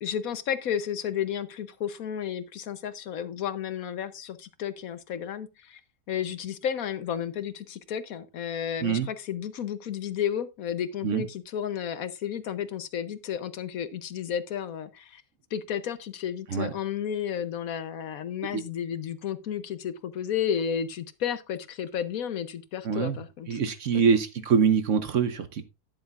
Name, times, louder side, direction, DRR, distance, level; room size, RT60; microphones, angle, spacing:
voice 1, 0.0-5.8 6.1-15.2 15.5-23.6, left 9 dB, 65° left, 1.1 m, -32 dB
voice 2, 22.8-23.2 23.5-25.6, right 6 dB, 55° right, 1.1 m, -24 dB
12.5 x 10.5 x 2.4 m
omnidirectional pair, 1.7 m